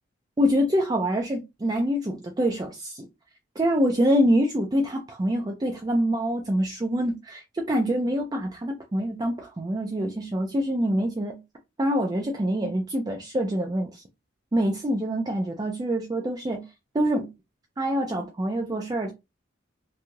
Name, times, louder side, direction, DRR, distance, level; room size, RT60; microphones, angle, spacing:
voice 1, 0.4-3.1 3.6-11.4 11.8-14.0 14.5-16.6 16.9-17.3 17.8-19.1, equal, 20° right, 0.3 m, -25 dB
3.0 x 2.6 x 2.3 m
head